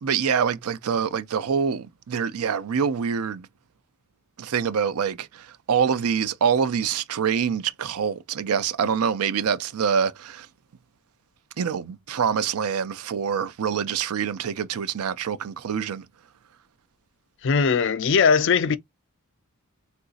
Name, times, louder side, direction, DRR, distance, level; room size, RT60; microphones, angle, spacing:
voice 1, 0.0-3.5 4.4-10.5 11.6-16.1, right 7 dB, 80° right, 0.5 m, -25 dB
voice 2, 17.4-18.8, left 5 dB, 55° left, 0.4 m, -19 dB
3.8 x 2.5 x 2.4 m
head